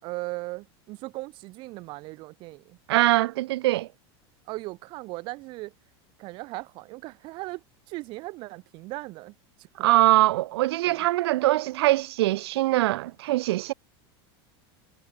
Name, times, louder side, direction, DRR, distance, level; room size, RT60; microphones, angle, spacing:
voice 1, 0.0-2.8 4.5-5.7 6.2-9.7 10.9-11.1, right 22 dB, 35° right, 3.2 m, -38 dB
voice 2, 2.9-3.9 9.8-13.7, right 17 dB, 70° right, 0.8 m, -22 dB
supercardioid pair, 175°, 14 cm